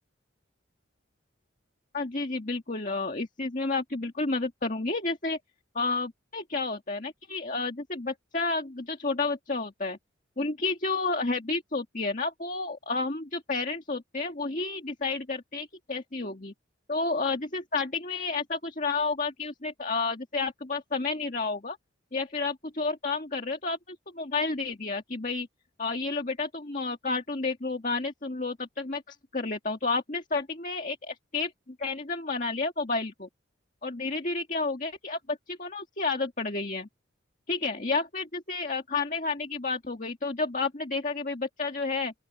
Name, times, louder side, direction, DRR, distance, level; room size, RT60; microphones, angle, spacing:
voice 1, 1.9-5.4 5.8-10.0 10.4-16.5 16.9-21.8 22.1-25.5 25.8-31.5 31.8-33.3 33.8-36.9 37.5-42.1, left 3 dB, 40° left, 1.9 m, -31 dB
open air
head